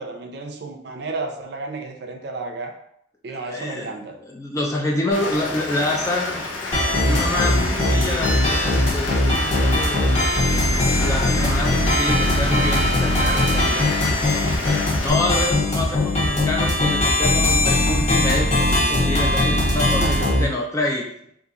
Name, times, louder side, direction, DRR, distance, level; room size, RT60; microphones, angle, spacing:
voice 1, 0.0-2.7 3.2-4.2 5.0-5.6 20.0-20.4, right 3 dB, 55° right, 3 dB, 0.4 m, -32 dB
voice 2, 3.3-6.4 7.1-10.1 10.5-14.6 15.0-21.1, left 1 dB, 15° left, -1 dB, 0.4 m, -27 dB
Rain, 5.1-15.1, left 3 dB, 80° left, 0.6 m, -30 dB
sound 1, 6.7-20.4, left 1 dB, 35° left, 0.8 m, -20 dB
2.8 x 2.5 x 3.6 m, 0.70 s
head